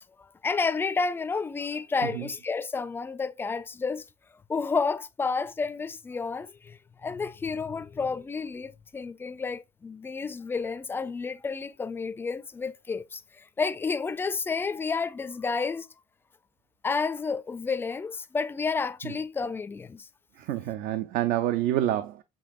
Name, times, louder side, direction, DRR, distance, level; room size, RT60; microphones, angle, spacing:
voice 1, 0.2-4.1 4.5-15.9 16.8-20.1, left 4 dB, 15° left, 0.4 m, -31 dB
voice 2, 20.4-22.2, right 13 dB, 70° right, 0.5 m, -27 dB
7.0 x 3.1 x 2.4 m
cardioid pair, 125°, 14 cm